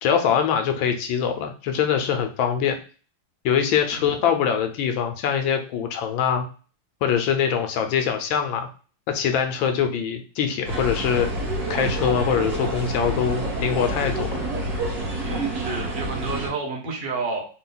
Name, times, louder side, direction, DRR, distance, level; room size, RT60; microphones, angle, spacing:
voice 1, 0.0-2.8 3.4-6.4 7.0-8.7 9.1-11.3 11.7-14.5, left 8 dB, 85° left, 6 dB, 1.5 m, -23 dB
sound 1, 10.6-16.5, right 1 dB, 55° right, 2.0 m, -28 dB
voice 2, 15.2-17.5, right 3 dB, 35° right, -2 dB, 1.0 m, -30 dB
4.2 x 2.3 x 3.8 m, 0.38 s
omnidirectional pair, 2.1 m